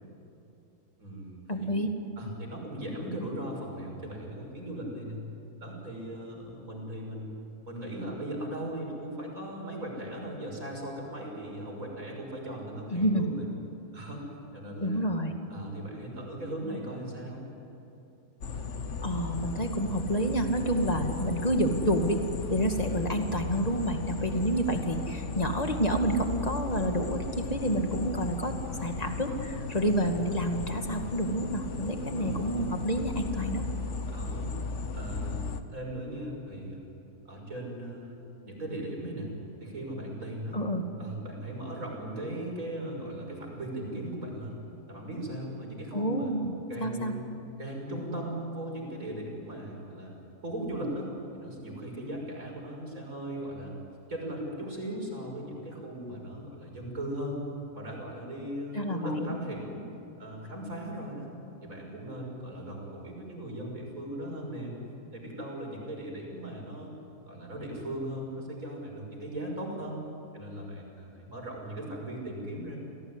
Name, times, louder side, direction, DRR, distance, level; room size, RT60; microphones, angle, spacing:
voice 1, 1.0-1.7 2.2-5.2 5.6-7.4 7.7-13.4 13.9-14.3 14.5-15.0 15.5-17.4 32.0-32.7 34.1-34.6 34.9-36.8 37.2-39.3 39.6-40.6 41.0-44.5 44.9-46.3 46.7-47.3 47.6-50.1 50.4-53.7 54.1-57.4 57.7-59.8 60.2-61.3 61.6-64.7 65.1-66.9 67.3-70.0 70.3-72.8, right 1 dB, 55° right, 0 dB, 6.7 m, -38 dB
voice 2, 1.5-1.9 12.9-13.3 14.8-15.4 19.0-22.2 22.5-33.6 40.5-40.9 45.9-46.5 46.8-47.1 58.7-59.3, right 1 dB, 25° left, 4 dB, 2.4 m, -29 dB
sound 1, 18.4-35.6, left 4 dB, 50° left, 1.3 m, -36 dB
29.0 x 18.5 x 10.0 m, 2.8 s
omnidirectional pair, 1.7 m